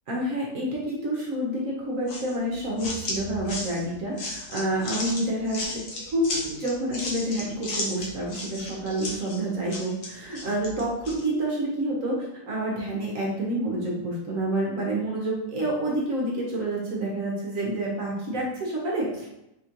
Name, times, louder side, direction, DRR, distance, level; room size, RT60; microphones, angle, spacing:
voice 1, 0.1-5.8 6.1-19.3, right 1 dB, 55° right, -3 dB, 1.2 m, -28 dB
sound 1, 2.1-11.2, left 2 dB, 60° left, 1.1 m, -35 dB
3.8 x 3.7 x 2.9 m, 0.85 s
omnidirectional pair, 1.8 m